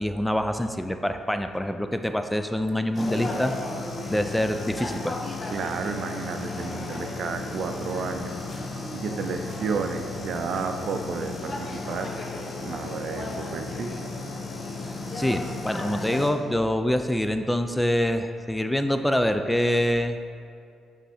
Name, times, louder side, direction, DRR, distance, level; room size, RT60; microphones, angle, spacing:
voice 1, 0.0-3.5 4.1-5.2 14.8-20.2, equal, 5° left, 8 dB, 0.3 m, -25 dB
sound 1, 2.9-16.3, left 3 dB, 35° left, 0.7 m, -34 dB
voice 2, 5.5-8.3 8.9-12.1 12.6-14.0, right 5 dB, 65° right, 6 dB, 0.5 m, -32 dB
7.3 x 3.5 x 4.2 m, 2.3 s
cardioid pair, 90°, 0 cm